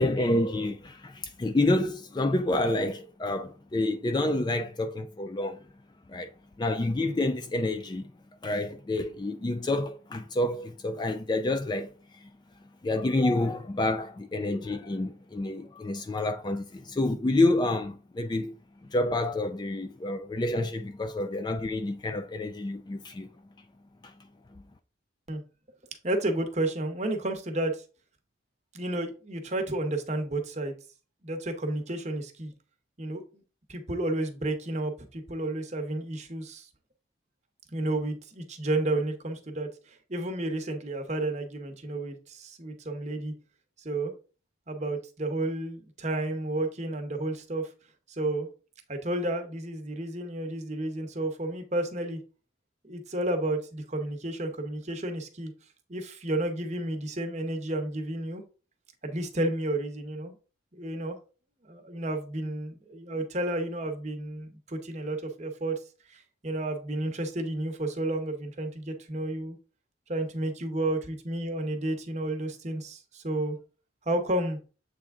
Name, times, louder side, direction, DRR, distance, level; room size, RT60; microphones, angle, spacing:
voice 1, 0.0-5.6 6.1-6.3 6.6-8.1 8.4-11.9 12.2-12.3 12.8-18.5 18.9-23.3 24.0-24.1, left 2 dB, 20° left, 0.3 m, -28 dB
voice 2, 26.0-27.8 28.7-30.7 31.2-32.5 33.0-33.4 33.7-36.7 37.7-43.3 43.8-44.1 44.7-47.7 48.1-48.5 48.9-52.2 52.8-55.5 55.9-58.4 59.0-60.3 60.7-61.2 61.6-65.8 66.1-69.6 70.1-73.6 74.0-74.6, right 1 dB, 35° right, 0.9 m, -31 dB
7.6 x 3.4 x 3.6 m
head